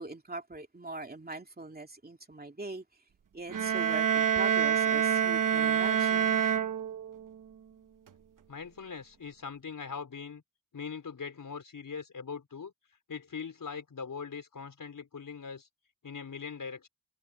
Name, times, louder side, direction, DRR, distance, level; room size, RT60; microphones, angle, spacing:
voice 1, 0.0-3.0 3.3-6.4, right 2 dB, 30° right, 2.9 m, -41 dB
sound 1, 3.5-7.3, right 8 dB, 70° right, 1.0 m, -27 dB
voice 2, 8.5-10.4 10.7-12.7 13.1-15.7 16.0-16.9, left 6 dB, 75° left, 4.7 m, -41 dB
wide cardioid pair, 80°, 33 cm